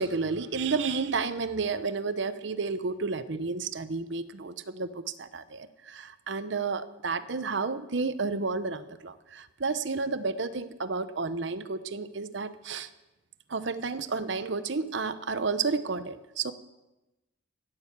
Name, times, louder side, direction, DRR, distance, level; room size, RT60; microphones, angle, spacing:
voice 1, 0.0-12.9 13.5-16.5, right 4 dB, 65° right, 13 dB, 0.8 m, -31 dB
16.5 x 9.3 x 7.3 m, 1.0 s
head